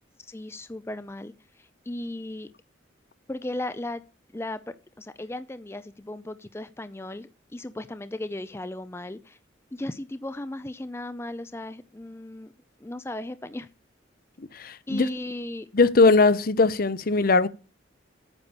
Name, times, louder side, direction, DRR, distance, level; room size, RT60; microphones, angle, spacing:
voice 1, 0.2-2.5 3.3-4.0 4.3-4.6 5.0-9.4 9.7-12.5 12.8-13.7 14.9-15.7, left 1 dB, 15° left, 0.4 m, -36 dB
voice 2, 14.5-15.1 15.7-17.5, left 3 dB, 50° left, 0.7 m, -20 dB
9.1 x 6.7 x 7.0 m
head